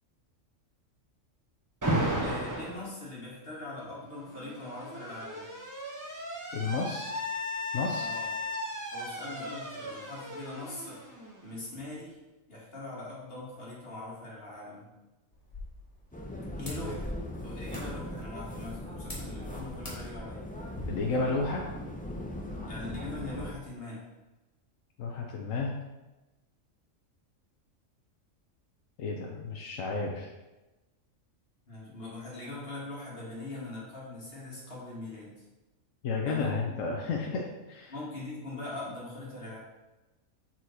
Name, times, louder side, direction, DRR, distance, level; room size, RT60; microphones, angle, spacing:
Alarm, 1.8-2.8 4.0-11.7, equal, 15° right, 0.8 m, -35 dB
voice 1, 2.2-5.5 7.9-8.3 8.9-11.0 11.4-12.2 12.5-14.9 16.6-17.1 17.4-20.4 22.7-24.0 31.7-35.4 36.3-36.6 37.9-39.6, left 2 dB, 45° left, -6 dB, 2.1 m, -41 dB
voice 2, 6.5-7.1 7.7-8.1 16.8-16.9 20.9-21.6 25.0-25.7 29.0-30.3 36.0-37.9, left 4 dB, 80° left, 0 dB, 1.1 m, -32 dB
sound 1, 15.3-20.8, left 1 dB, 25° left, 1.7 m, -47 dB
sound 2, 16.1-23.5, left 1 dB, 10° left, 0.4 m, -39 dB
6.2 x 4.5 x 4.1 m, 1.1 s
omnidirectional pair, 1.4 m